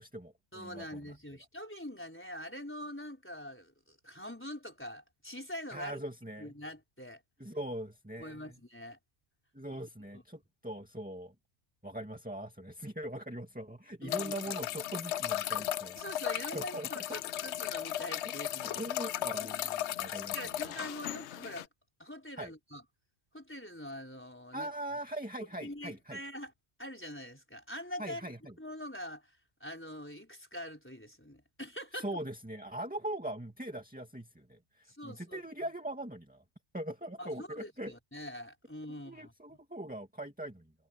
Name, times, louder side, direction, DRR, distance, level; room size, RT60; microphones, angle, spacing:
voice 1, 0.0-1.1 5.7-6.5 7.4-8.6 9.5-11.3 11.8-16.0 16.4-17.0 18.6-20.9 22.4-22.5 24.5-26.2 28.0-28.5 31.9-36.4 36.7-37.9 39.1-40.7, right 1 dB, 10° right, 2.3 m, -41 dB
voice 2, 0.5-6.0 6.4-7.2 8.2-9.0 9.7-9.8 10.1-10.2 14.0-14.3 16.0-18.9 20.3-21.7 22.0-22.8 23.3-24.7 25.6-26.5 26.8-28.3 28.6-32.2 34.9-35.4 37.2-39.6, equal, 10° left, 4.2 m, -44 dB
sound 1, 14.1-21.7, left 12 dB, 90° left, 0.9 m, -36 dB
omnidirectional pair, 1.1 m